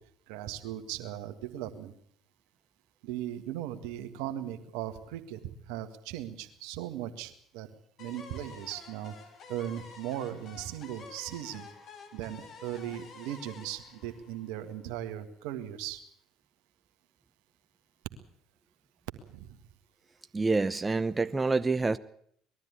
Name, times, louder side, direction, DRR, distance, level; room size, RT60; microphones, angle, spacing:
voice 1, 0.3-2.0 3.0-5.4 5.7-7.7 8.0-9.1 9.5-11.7 12.1-16.0 19.3-19.6, right 12 dB, 70° right, 8 dB, 1.7 m, -38 dB
sound 1, 8.0-14.9, left 5 dB, 55° left, 3.3 m, -50 dB
voice 2, 20.3-22.0, right 3 dB, 20° right, 12 dB, 0.8 m, -27 dB
20.5 x 13.0 x 9.6 m, 0.66 s
hypercardioid pair, 55°, 0 cm